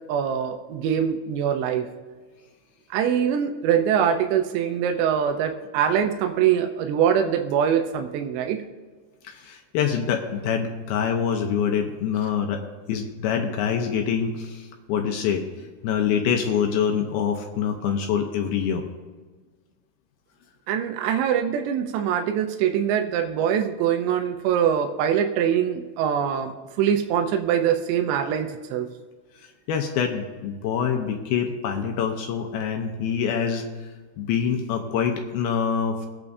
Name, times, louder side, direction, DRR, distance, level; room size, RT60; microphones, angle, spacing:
voice 1, 0.1-1.9 2.9-8.6 20.7-28.9, right 8 dB, 80° right, 4 dB, 2.9 m, -23 dB
voice 2, 9.2-12.6 12.9-15.4 15.8-18.9 29.7-33.6 34.2-36.1, left 7 dB, 75° left, 3 dB, 2.4 m, -25 dB
23.0 x 8.9 x 2.7 m, 1.4 s
omnidirectional pair, 5.2 m